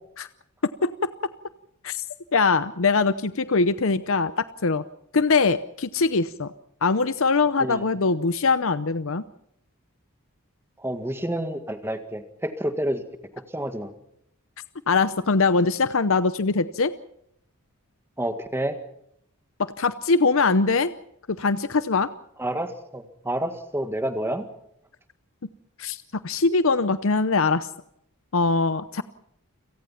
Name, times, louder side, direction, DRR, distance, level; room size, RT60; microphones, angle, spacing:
voice 1, 0.8-1.1 1.8-2.0 2.3-4.8 5.1-6.5 6.8-9.2 14.9-16.9 19.6-20.9 21.3-22.1 25.8-26.0 26.2-27.7 28.3-29.0, left 4 dB, 65° left, 13 dB, 0.8 m, -22 dB
voice 2, 10.8-13.0 13.5-13.9 18.2-18.7 22.4-24.4, right 1 dB, 10° right, 8 dB, 1.9 m, -29 dB
29.5 x 18.0 x 5.8 m, 0.73 s
head